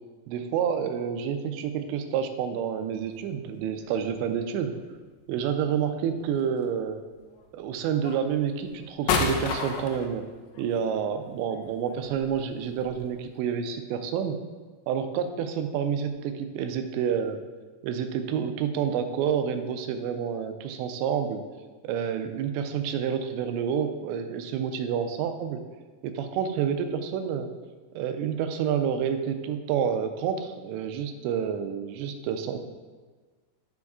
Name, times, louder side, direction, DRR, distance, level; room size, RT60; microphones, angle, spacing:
voice 1, 0.3-4.7 5.3-7.0 7.5-10.3 10.6-14.4 14.9-17.4 17.8-21.4 21.8-25.6 26.0-27.5 27.9-32.6, right 8 dB, 90° right, 7 dB, 2.9 m, -29 dB
sound 1, 3.0-3.1 3.8-4.4 5.8-6.4 7.3-7.4 8.0-13.4, left 5 dB, 85° left, 2.9 m, -32 dB
13.0 x 5.3 x 2.4 m, 1.3 s
omnidirectional pair, 5.0 m